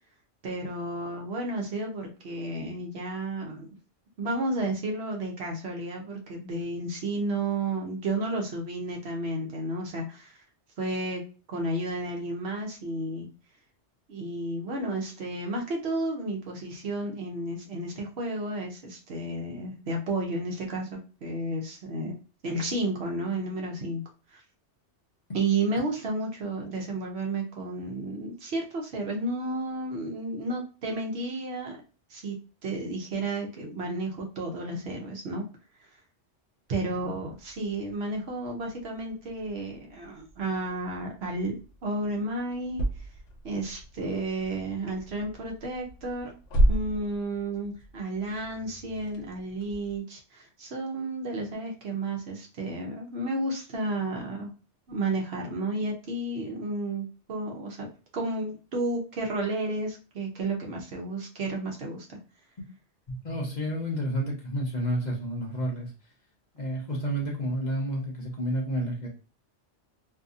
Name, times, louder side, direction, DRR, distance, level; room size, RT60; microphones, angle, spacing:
voice 1, 0.4-3.7 4.2-10.4 10.8-11.2 11.5-13.3 14.1-22.1 22.4-24.0 24.3-24.4 25.3-31.8 32.1-35.5 36.7-42.8 43.4-46.3 46.7-54.5 54.9-57.9 58.1-62.2 63.7-63.8 64.9-65.1 65.7-65.8 66.7-66.9 68.5-68.7, right 2 dB, 65° right, 1 dB, 0.9 m, -32 dB
sound 1, 36.8-50.0, right 1 dB, 85° left, 1.0 m, -34 dB
voice 2, 63.1-65.9 66.5-69.1, equal, 45° left, -2 dB, 0.7 m, -30 dB
2.7 x 2.5 x 2.4 m, 0.34 s
omnidirectional pair, 1.2 m